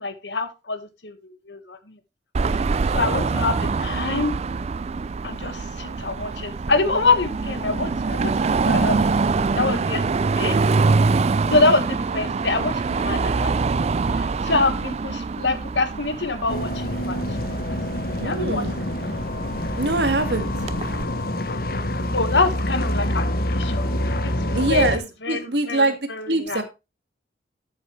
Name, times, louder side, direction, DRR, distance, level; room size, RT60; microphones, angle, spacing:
voice 1, 0.0-1.9 2.9-4.3 5.2-10.0 10.4-10.6 11.4-13.8 14.1-18.9 22.1-24.0 24.4-26.6, left 3 dB, 75° left, 10 dB, 1.6 m, -26 dB
Car passing by / Traffic noise roadway noise / Engine, 2.3-21.0, right 4 dB, 35° right, 0.4 m, -25 dB
sound 1, 16.5-25.0, left 1 dB, 55° left, 1.2 m, -26 dB
voice 2, 18.2-18.8 19.8-20.5 24.5-25.0 25.3-26.0 26.3-26.6, right 2 dB, 70° right, 7 dB, 2.0 m, -23 dB
12.5 x 6.9 x 3.2 m, 0.26 s
head